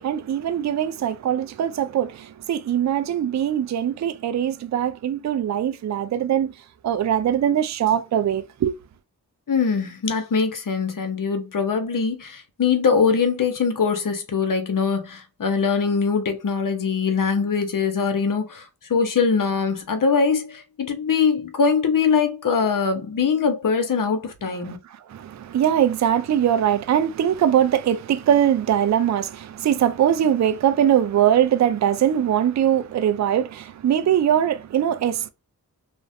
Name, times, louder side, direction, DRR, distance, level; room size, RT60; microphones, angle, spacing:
voice 1, 0.0-6.5 6.8-8.7 24.6-35.3, right 10 dB, 45° right, 0.4 m, -21 dB
voice 2, 9.5-24.8, left 5 dB, 55° left, 0.8 m, -22 dB
2.5 x 2.1 x 2.6 m
cardioid pair, 40°, 39 cm